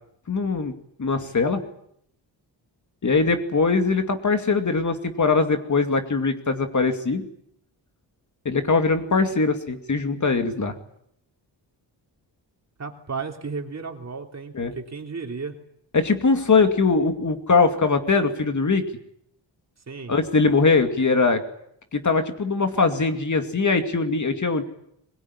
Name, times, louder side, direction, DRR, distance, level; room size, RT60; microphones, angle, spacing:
voice 1, 0.3-0.7 1.0-1.6 3.0-7.2 8.4-10.7 14.5-14.7 15.9-18.9 20.1-21.4 21.9-24.6, left 4 dB, 40° left, 7 dB, 2.4 m, -21 dB
voice 2, 12.8-15.5 19.9-20.1, right 4 dB, 35° right, 3 dB, 3.3 m, -34 dB
22.0 x 22.0 x 9.8 m, 0.73 s
wide cardioid pair, 145°, 44 cm